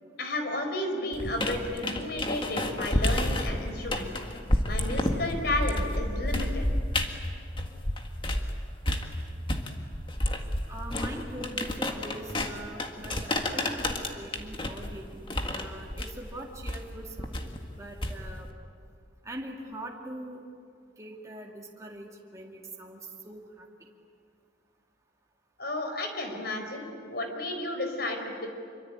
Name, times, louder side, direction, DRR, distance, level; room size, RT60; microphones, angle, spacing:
voice 1, 0.2-4.1 4.6-6.6 25.6-28.5, left 1 dB, 55° left, 5 dB, 4.6 m, -32 dB
sound 1, 1.1-8.5 8.8-18.5, left 1 dB, 25° left, 1.8 m, -30 dB
voice 2, 10.7-17.4 17.7-18.5 19.2-20.4 21.0-23.7, right 1 dB, 15° right, -2 dB, 2.3 m, -42 dB
26.5 x 24.5 x 8.9 m, 2.3 s
head